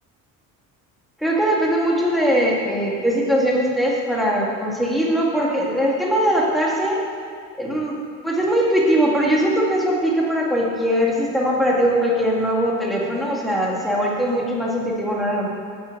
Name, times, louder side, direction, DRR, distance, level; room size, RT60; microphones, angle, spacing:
voice 1, 1.2-7.0 7.6-8.0 8.2-15.5, equal, ahead, -3 dB, 2.0 m, -21 dB
10.0 x 5.4 x 7.8 m, 2.2 s
cardioid pair, 120°, 35 cm